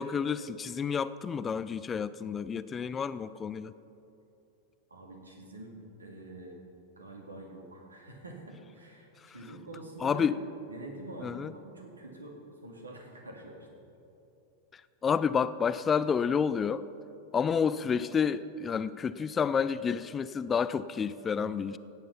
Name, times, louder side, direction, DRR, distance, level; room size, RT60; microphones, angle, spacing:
voice 1, 0.0-3.7 9.2-9.3 10.0-10.4 11.2-11.5 15.0-16.9 17.3-21.8, left 6 dB, 20° left, 15 dB, 0.3 m, -29 dB
voice 2, 4.9-6.6 7.0-12.3 12.6-13.7, right 2 dB, 75° right, 1 dB, 2.2 m, -46 dB
16.5 x 8.9 x 5.6 m, 2.8 s
figure-of-eight pair, 90°, 0 cm